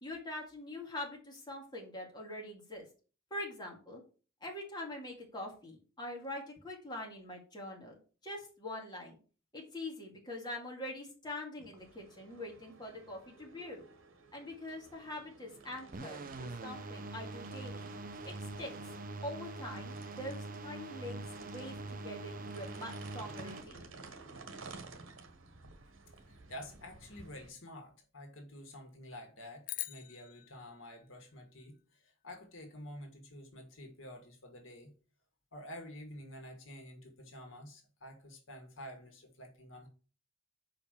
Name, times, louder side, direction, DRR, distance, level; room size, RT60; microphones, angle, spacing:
voice 1, 0.0-2.9 3.3-4.0 4.4-9.2 9.5-13.8 14.3-17.9 18.2-18.7 19.2-24.0, left 1 dB, 20° left, -1 dB, 2.1 m, -44 dB
sound 1, 11.8-27.5, right 3 dB, 85° right, 1.4 m, -53 dB
sound 2, 15.9-23.6, right 2 dB, 45° right, 0.7 m, -44 dB
voice 2, 26.3-34.9 35.5-39.9, equal, 70° left, 3 dB, 2.0 m, -49 dB
sound 3, 29.6-32.1, left 14 dB, 40° left, 0.3 m, -45 dB
5.8 x 5.1 x 6.6 m, 0.37 s
head